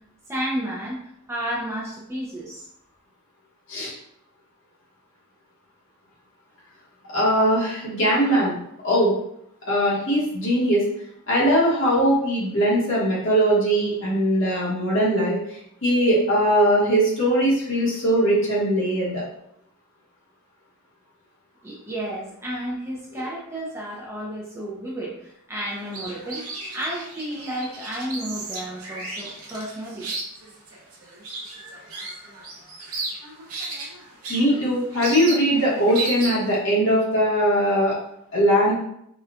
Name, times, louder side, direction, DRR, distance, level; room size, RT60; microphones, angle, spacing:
voice 1, 0.3-2.7 21.6-26.4 26.7-30.1 33.5-33.6, right 1 dB, 10° right, -5 dB, 0.5 m, -32 dB
voice 2, 7.1-8.5 8.8-9.2 9.7-10.9 11.3-19.2 34.3-37.9 38.3-38.7, equal, 55° left, -6 dB, 1.2 m, -20 dB
sound 1, 25.7-36.6, right 3 dB, 75° right, 0.9 m, -35 dB
4.1 x 2.3 x 2.4 m, 0.74 s
head